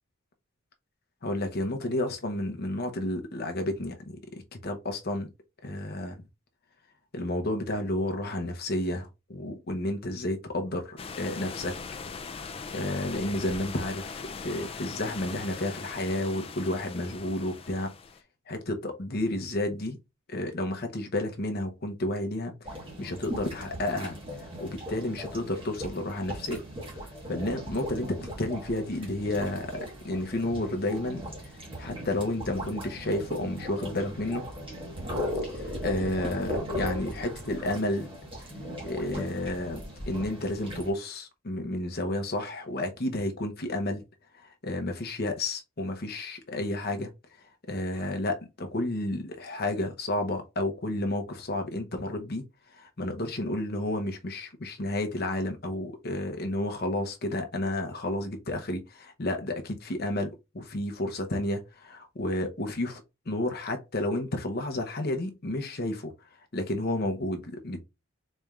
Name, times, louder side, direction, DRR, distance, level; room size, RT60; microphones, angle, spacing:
voice 1, 1.2-5.3 5.6-6.2 7.1-11.7 12.7-17.9 18.5-20.0 20.3-22.5 23.0-24.2 24.6-26.6 26.9-27.0 27.3-31.3 31.8-34.5 35.5-38.1 38.8-44.0 44.3-47.1 47.4-52.4 52.7-63.0 63.3-66.1 66.5-67.8, left 1 dB, 45° left, 0.8 m, -31 dB
sound 1, 11.0-18.2, left 5 dB, 25° left, 0.3 m, -40 dB
sound 2, 22.6-40.9, equal, 25° right, 1.3 m, -38 dB
4.2 x 3.3 x 2.4 m
head